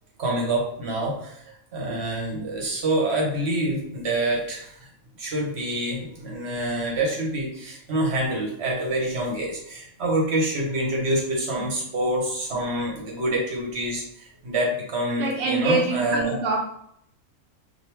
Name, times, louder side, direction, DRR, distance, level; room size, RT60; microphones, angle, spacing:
voice 1, 0.2-1.4 1.7-4.8 5.2-16.4, right 1 dB, 50° right, -2 dB, 1.2 m, -26 dB
voice 2, 15.2-16.6, right 3 dB, 85° right, -3 dB, 1.1 m, -25 dB
2.9 x 2.7 x 3.4 m, 0.72 s
omnidirectional pair, 1.5 m